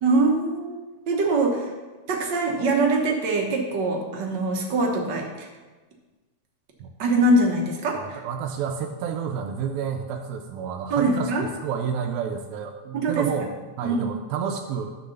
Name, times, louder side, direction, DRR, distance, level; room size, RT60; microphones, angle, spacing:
voice 1, 0.0-0.8 1.1-1.7 2.1-5.5 7.0-8.2 10.9-11.4 12.9-13.3 13.8-14.0, right 2 dB, 60° right, 0 dB, 1.1 m, -23 dB
voice 2, 7.9-15.0, right 7 dB, 80° right, 3 dB, 1.9 m, -30 dB
9.5 x 3.9 x 6.6 m, 1.2 s
omnidirectional pair, 3.4 m